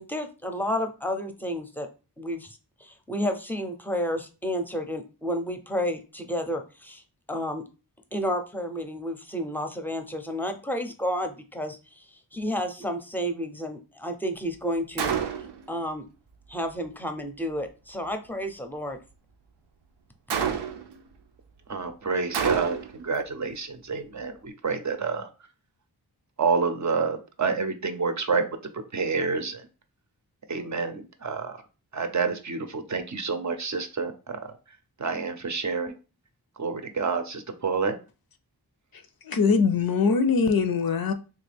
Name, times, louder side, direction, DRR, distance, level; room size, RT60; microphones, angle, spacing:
voice 1, 0.0-1.9 2.2-7.0 7.3-7.6 8.1-12.1 12.3-15.1 15.7-16.0 16.5-19.0, equal, 5° left, 0.6 m, -31 dB
Gunshot gunfire, 15.0-15.7 20.3-21.0 22.3-23.0, right 7 dB, 90° right, 0.5 m, -28 dB
voice 2, 21.7-25.3 26.4-28.5 28.7-29.7 30.5-31.6 31.9-34.6 35.0-36.0 36.6-38.0, right 4 dB, 45° right, 0.5 m, -28 dB
voice 3, 38.9-41.1, left 5 dB, 60° left, 0.5 m, -23 dB
3.3 x 2.4 x 3.3 m
cardioid pair, 45°, 40 cm